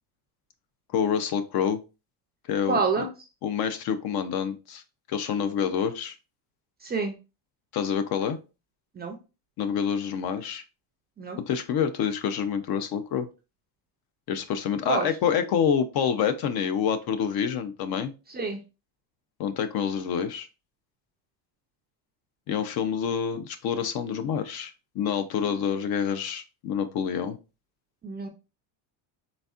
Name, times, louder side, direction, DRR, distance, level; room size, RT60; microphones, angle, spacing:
voice 1, 0.9-1.8 2.5-3.0 3.4-4.8 5.1-6.2 7.7-8.4 9.6-10.6 11.5-13.3 14.3-18.1 19.4-20.5 22.5-27.4, left 7 dB, 50° left, 10 dB, 0.6 m, -27 dB
voice 2, 2.7-3.1 6.8-7.2 8.9-9.2 11.2-11.4 14.8-15.1 18.3-18.6 28.0-28.3, right 4 dB, 20° right, 3 dB, 0.4 m, -27 dB
4.1 x 3.4 x 2.3 m, 0.30 s
cardioid pair, 140°, 49 cm